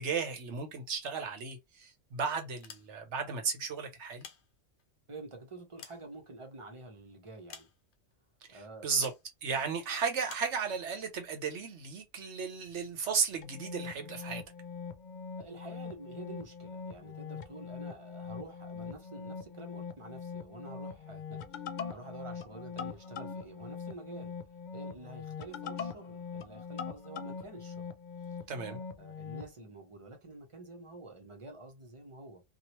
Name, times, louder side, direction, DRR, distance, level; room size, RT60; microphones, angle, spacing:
voice 1, 0.0-4.2 8.5-9.1 9.4-14.4 28.5-28.8, right 5 dB, 65° right, 1.1 m, -34 dB
sound 1, 2.6-3.3 4.0-5.0 5.5-6.7 7.5-8.1 9.0-9.3 10.3-10.6, left 7 dB, 65° left, 0.9 m, -52 dB
voice 2, 5.1-7.7 8.5-9.1 15.4-21.4 21.9-24.3 24.7-27.9 28.2-28.4 28.6-32.4, right 2 dB, 25° right, 0.9 m, -48 dB
sound 2, 13.4-29.5, left 6 dB, 85° left, 0.4 m, -42 dB
2.9 x 2.6 x 2.9 m
omnidirectional pair, 1.3 m